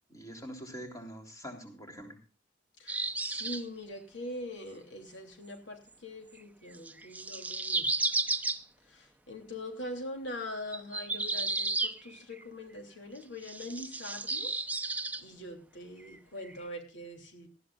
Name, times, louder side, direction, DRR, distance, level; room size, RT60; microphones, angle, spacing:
voice 1, 0.1-2.2, equal, 20° left, 3 dB, 3.4 m, -44 dB
voice 2, 2.8-8.1 8.8-14.5 14.8-14.9 15.2-17.5, left 1 dB, 80° left, 4 dB, 3.0 m, -43 dB
sound 1, 2.9-3.6 6.7-8.6 10.7-12.4 13.4-15.2 16.0-16.2 16.4-16.5, right 3 dB, 10° right, 0.7 m, -33 dB
19.0 x 14.0 x 2.5 m, 0.35 s
head